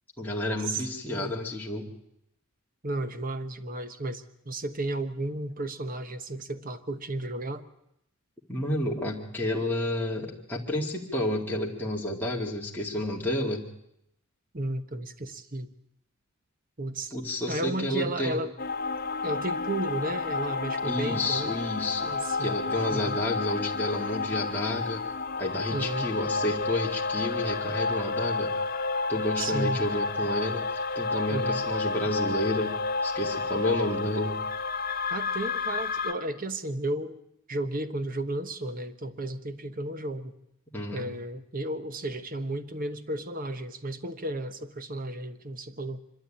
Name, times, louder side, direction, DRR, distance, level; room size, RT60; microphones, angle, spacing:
voice 1, 0.2-1.9 8.5-13.7 17.1-18.4 20.8-25.1 25.4-28.5 29.1-34.4 40.7-41.1, left 1 dB, 10° left, -3 dB, 2.1 m, -30 dB
voice 2, 2.8-7.6 14.5-15.7 16.8-17.1 17.5-18.5 19.2-21.5 22.0-22.6 22.9-23.2 25.7-26.1 29.4-29.8 31.3-31.6 35.1-37.2 37.5-40.4 40.9-46.0, right 1 dB, 40° right, 11 dB, 1.1 m, -33 dB
sound 1, 18.6-36.1, left 3 dB, 40° left, 1.1 m, -30 dB
25.0 x 12.5 x 8.7 m, 0.80 s
head